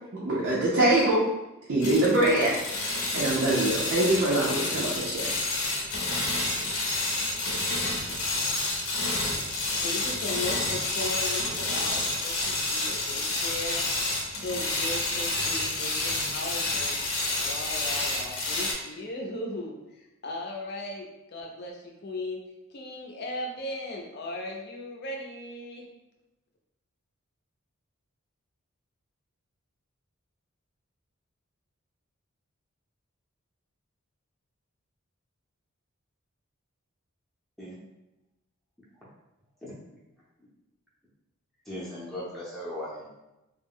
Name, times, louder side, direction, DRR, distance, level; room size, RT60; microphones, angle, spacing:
voice 1, 0.1-1.2 1.7-5.3, right 1 dB, 60° right, -6 dB, 0.5 m, -24 dB
sound 1, 1.8-18.7, left 2 dB, 90° left, 0.6 m, -29 dB
voice 2, 9.7-13.8 14.4-16.9 17.4-19.7 20.2-22.4 22.7-25.9, left 1 dB, 50° left, 0 dB, 0.5 m, -37 dB
voice 3, 41.7-43.1, left 1 dB, ahead, -9 dB, 0.6 m, -37 dB
2.3 x 2.0 x 3.5 m, 0.96 s
head